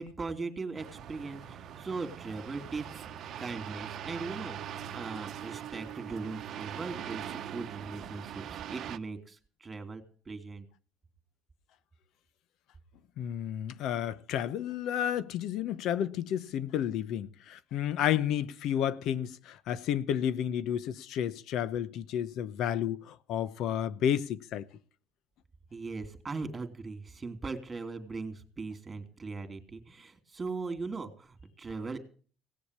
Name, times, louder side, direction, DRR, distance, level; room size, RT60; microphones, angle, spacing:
voice 1, 0.0-3.1 3.4-10.7 25.7-32.0, right 4 dB, 25° right, 2.8 m, -39 dB
sound 1, 0.8-9.0, right 9 dB, 60° right, 0.9 m, -42 dB
voice 2, 13.2-24.7, left 10 dB, 70° left, 0.9 m, -31 dB
17.5 x 7.1 x 8.2 m
supercardioid pair, 85°, 0 cm